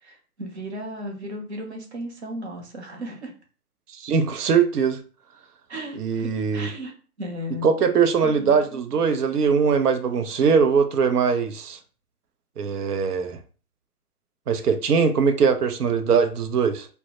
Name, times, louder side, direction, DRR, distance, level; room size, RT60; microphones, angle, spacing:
voice 1, 0.0-3.3 5.7-6.9 7.2-7.7 8.2-9.0, equal, 45° right, 0.7 m, -35 dB
voice 2, 3.9-5.0 6.0-6.7 7.6-11.8 12.6-13.4 14.5-16.9, right 6 dB, 90° right, 0.6 m, -21 dB
2.1 x 2.0 x 2.9 m
hypercardioid pair, 160°, 45 cm